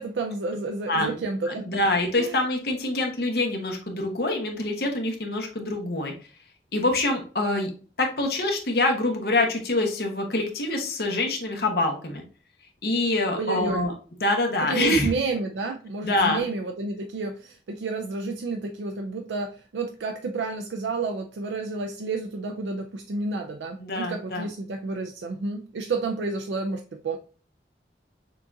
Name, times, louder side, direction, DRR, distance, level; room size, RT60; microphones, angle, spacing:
voice 1, 0.0-1.7 2.2-2.4 13.4-13.9 14.7-27.2, right 3 dB, 90° right, 4 dB, 0.4 m, -30 dB
voice 2, 1.5-6.1 6.7-7.7 8.0-12.2 12.8-13.9 14.2-15.1 16.0-16.4 23.8-24.5, left 2 dB, 65° left, 3 dB, 1.0 m, -25 dB
6.5 x 2.4 x 2.6 m, 0.38 s
head